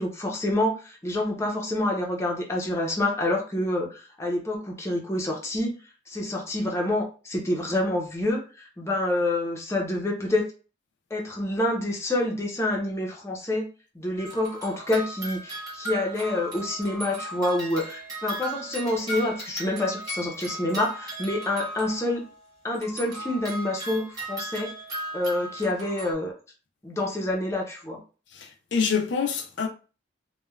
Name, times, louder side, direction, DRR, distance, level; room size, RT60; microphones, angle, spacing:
voice 1, 0.0-5.7 6.1-10.5 11.1-13.7 13.9-22.2 22.6-24.7 25.1-26.3 26.8-28.0, left 1 dB, 15° left, 0.6 m, -27 dB
sound 1, 14.2-22.4 22.7-26.1, right 2 dB, 20° right, 1.2 m, -37 dB
voice 2, 28.3-29.7, left 6 dB, 75° left, 0.5 m, -26 dB
3.1 x 2.1 x 2.3 m
head